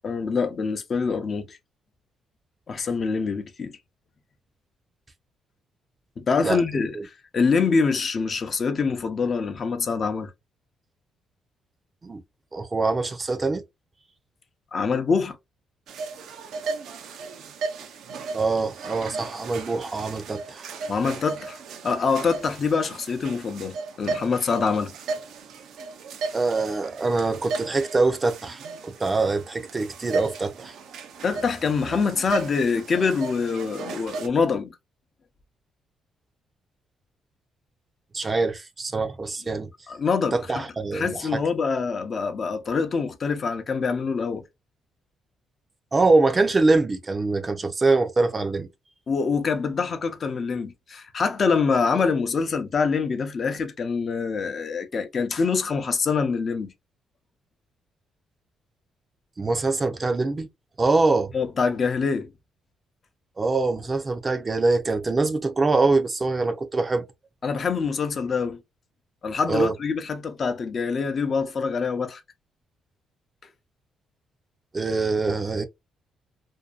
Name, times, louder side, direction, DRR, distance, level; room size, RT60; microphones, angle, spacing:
voice 1, 0.0-1.6 2.7-3.7 6.2-7.0 7.3-10.3 14.7-15.4 20.9-21.6 21.8-24.9 31.2-34.7 39.9-40.6 40.9-44.4 49.1-56.7 61.3-62.3 67.4-68.6 69.2-72.2, left 5 dB, 45° left, 0.6 m, -25 dB
voice 2, 12.5-13.6 18.3-20.7 26.3-30.7 38.1-39.7 40.3-41.4 45.9-48.7 59.4-60.5 60.8-61.3 63.4-67.0 69.5-69.7 74.7-75.7, right 3 dB, 30° right, 0.5 m, -24 dB
sound 1, 15.9-34.3, right 4 dB, 75° right, 0.6 m, -35 dB
2.6 x 2.2 x 2.4 m
cardioid pair, 90°, 0 cm